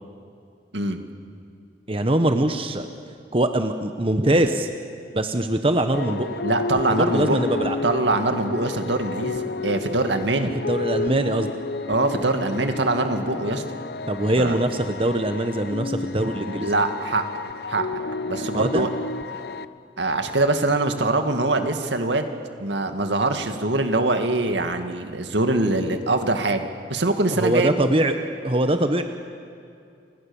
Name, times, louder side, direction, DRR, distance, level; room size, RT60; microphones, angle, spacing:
voice 1, 1.9-2.9 3.3-4.7 5.1-6.4 6.9-7.8 10.4-11.5 14.1-16.7 18.4-18.9 27.4-28.1 28.4-29.0, right 1 dB, 30° right, 7 dB, 1.1 m, -22 dB
sound 1, 5.9-19.7, left 3 dB, 60° left, 0.8 m, -31 dB
voice 2, 6.4-7.4 7.8-10.5 11.9-13.6 14.4-14.6 16.6-17.3 17.7-17.9 18.3-18.9 20.0-22.3 22.6-27.7, right 2 dB, 80° right, 6 dB, 2.2 m, -23 dB
30.0 x 26.5 x 7.2 m, 2.4 s
head